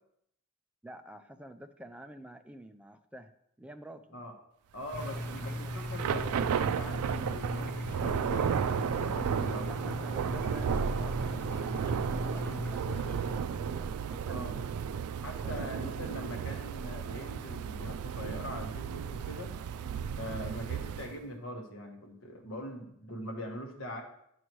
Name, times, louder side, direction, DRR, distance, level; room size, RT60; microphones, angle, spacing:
voice 1, 0.8-3.3 3.6-4.3 5.1-6.1 9.7-14.7 15.4-16.3, right 1 dB, 5° right, 6 dB, 0.4 m, -49 dB
voice 2, 4.7-9.7 14.3-14.6 15.2-19.5 20.1-24.0, left 1 dB, 60° left, 1 dB, 1.4 m, -42 dB
sound 1, 4.9-13.4, left 1 dB, 10° left, 0.9 m, -39 dB
Thunder / Rain, 4.9-21.2, right 7 dB, 85° right, 0.3 m, -34 dB
9.7 x 6.1 x 3.1 m, 0.75 s
head